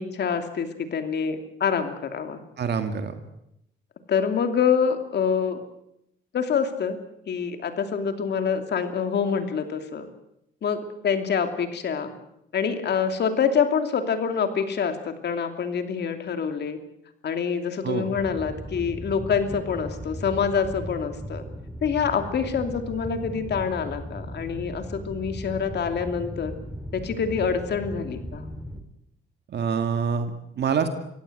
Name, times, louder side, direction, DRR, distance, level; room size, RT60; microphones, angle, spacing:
voice 1, 0.0-2.4 4.1-5.6 6.3-7.0 7.3-10.1 10.6-12.1 12.5-16.8 17.2-21.4 21.8-26.6 26.9-28.5, left 6 dB, 60° left, 7 dB, 2.9 m, -26 dB
voice 2, 2.6-3.1 17.8-18.0 29.5-30.9, right 6 dB, 60° right, 7 dB, 2.1 m, -26 dB
sound 1, 18.1-28.8, equal, ahead, 3.3 m, -37 dB
25.0 x 16.5 x 7.9 m, 0.79 s
cardioid pair, 90°, 20 cm